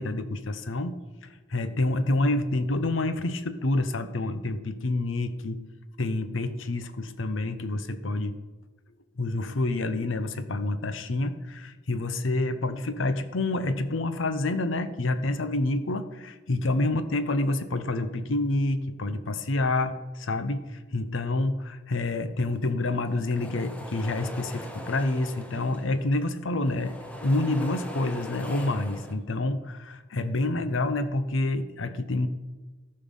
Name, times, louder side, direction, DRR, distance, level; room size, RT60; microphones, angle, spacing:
voice 1, 0.0-5.6 6.0-8.3 9.2-26.9 27.2-32.3, left 2 dB, 90° left, 11 dB, 0.8 m, -28 dB
sound 1, 23.0-26.2 26.5-29.1, left 1 dB, 5° left, 0.8 m, -41 dB
14.0 x 5.5 x 5.5 m, 1.2 s
head